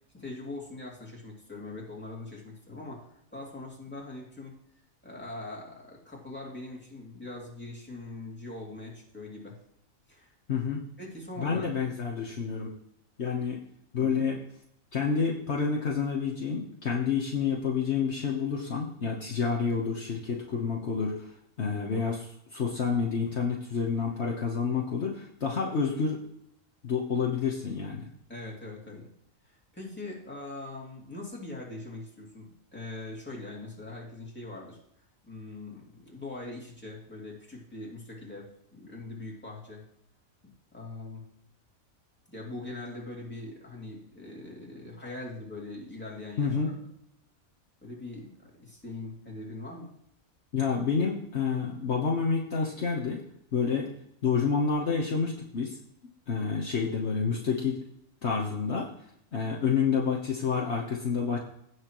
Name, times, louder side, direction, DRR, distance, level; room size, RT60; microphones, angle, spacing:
voice 1, 0.1-4.6 5.0-9.6 10.1-10.4 11.0-11.7 14.0-14.2 28.3-29.1 29.4-34.8 35.2-39.9 40.4-41.2 42.3-46.7 47.8-49.9, left 2 dB, 10° left, -4 dB, 2.6 m, -42 dB
voice 2, 10.5-10.8 11.4-12.7 13.2-13.6 13.9-14.4 14.9-21.3 21.6-26.2 26.8-28.1 46.4-46.7 50.5-53.2 53.5-53.9 54.2-55.8 56.3-57.8 58.2-58.9 59.3-61.5, left 5 dB, 55° left, -2 dB, 1.4 m, -29 dB
17.0 x 6.3 x 3.1 m, 0.76 s
omnidirectional pair, 1.4 m